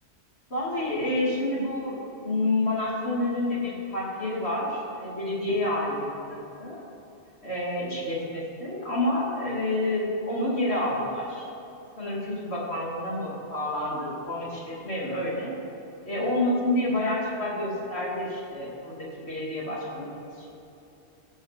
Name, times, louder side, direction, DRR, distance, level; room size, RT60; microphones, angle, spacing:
voice 1, 0.5-6.8 7.4-11.5 12.0-15.6 16.0-20.5, left 1 dB, 65° left, -5 dB, 2.8 m, -29 dB
17.5 x 6.4 x 5.1 m, 3.0 s
omnidirectional pair, 1.2 m